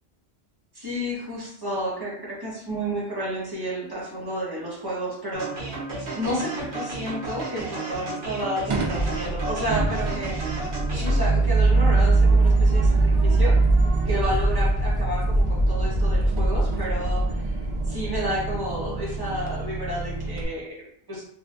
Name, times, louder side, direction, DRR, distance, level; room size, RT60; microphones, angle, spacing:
voice 1, 0.7-5.6 6.1-10.4 10.9-13.5 14.0-17.6 17.9-21.2, equal, 20° right, -7 dB, 1.3 m, -31 dB
sound 1, 5.3-11.3, right 2 dB, 85° right, 1.3 m, -33 dB
sound 2, 8.7-20.4, right 2 dB, 50° right, 0.3 m, -22 dB
4.3 x 2.2 x 2.6 m, 0.66 s
omnidirectional pair, 1.1 m